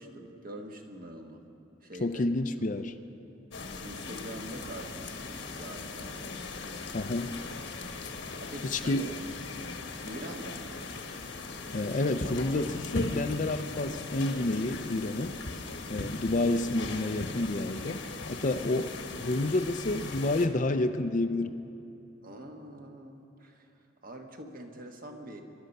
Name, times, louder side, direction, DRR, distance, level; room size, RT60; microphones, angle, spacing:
voice 1, 0.0-1.4 1.8-2.3 3.8-6.4 8.2-9.2 10.0-10.9 22.2-23.7 24.0-25.4, right 1 dB, 45° right, 3 dB, 1.3 m, -44 dB
voice 2, 2.0-2.9 6.9-7.4 8.6-9.1 11.7-15.4 15.9-18.0 18.3-21.6, left 2 dB, 40° left, 9 dB, 0.5 m, -29 dB
sound 1, 3.5-20.5, left 3 dB, 65° left, 1.2 m, -39 dB
23.0 x 11.5 x 5.4 m, 2.8 s
head